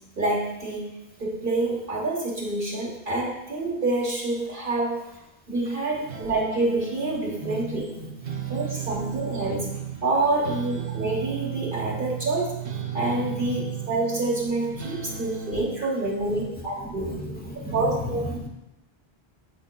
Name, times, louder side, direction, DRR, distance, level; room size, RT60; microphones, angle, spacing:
voice 1, 0.2-5.1 5.5-7.9 8.5-12.6 12.9-17.1 17.7-18.2, right 2 dB, 55° right, -5 dB, 1.3 m, -27 dB
sound 1, 6.1-15.6, right 9 dB, 85° right, 1.0 m, -35 dB
voice 2, 7.4-8.1 13.5-13.6 15.8-15.9 16.8-18.5, equal, 10° left, 0 dB, 0.9 m, -35 dB
8.2 x 5.2 x 2.2 m, 0.91 s
omnidirectional pair, 1.1 m